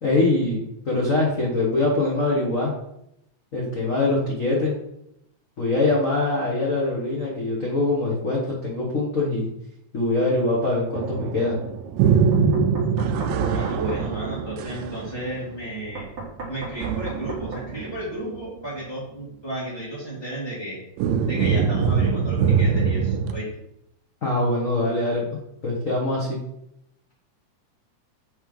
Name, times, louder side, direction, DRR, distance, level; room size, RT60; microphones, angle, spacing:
voice 1, 0.0-2.7 3.5-4.8 5.6-9.5 9.9-11.6 24.2-25.2 25.6-26.4, left 2 dB, 65° left, -4 dB, 0.7 m, -23 dB
sound 1, 10.9-15.8 16.8-18.0 18.3-18.4 21.0-23.3, right 6 dB, 85° right, 2.0 m, -23 dB
Knock, 12.3-14.0 15.9-17.7, right 3 dB, 30° right, 1.4 m, -36 dB
voice 2, 13.5-16.1 16.5-20.8 21.2-23.5, right 1 dB, 15° left, -8 dB, 1.0 m, -33 dB
7.2 x 3.2 x 5.3 m, 0.79 s
omnidirectional pair, 3.4 m